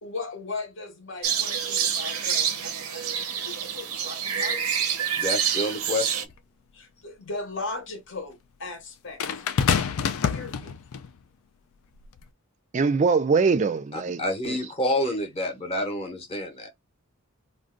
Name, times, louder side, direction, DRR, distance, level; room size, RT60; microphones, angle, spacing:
voice 1, 0.0-4.6 6.7-9.4 10.2-10.7, left 3 dB, 55° left, 0.8 m, -38 dB
sound 1, 1.2-6.3, right 8 dB, 85° right, 0.6 m, -27 dB
voice 2, 5.2-6.3 13.9-16.7, left 1 dB, 30° left, 0.7 m, -28 dB
sound 2, 6.3-6.4 9.2-11.1 12.0-12.2, left 7 dB, 75° left, 0.4 m, -26 dB
voice 3, 12.7-14.2 14.5-14.6, right 4 dB, 35° right, 0.3 m, -22 dB
2.5 x 2.1 x 3.7 m
head